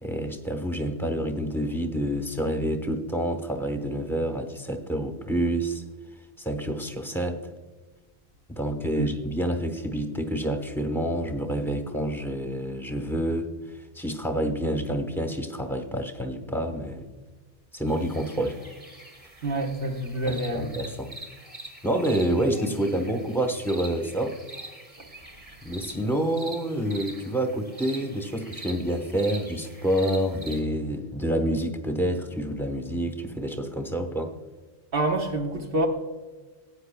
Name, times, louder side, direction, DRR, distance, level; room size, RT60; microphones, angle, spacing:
voice 1, 0.0-5.8 6.4-7.4 8.5-13.5 13.9-17.0 17.7-18.6 20.2-21.1 21.8-24.4 25.6-34.3, right 1 dB, ahead, 5 dB, 0.9 m, -28 dB
sound 1, 17.9-30.6, right 2 dB, 30° right, 1.8 m, -44 dB
voice 2, 19.4-20.7 34.9-35.9, right 1 dB, 55° right, 0 dB, 1.2 m, -27 dB
17.0 x 9.4 x 2.2 m, 1.3 s
omnidirectional pair, 1.1 m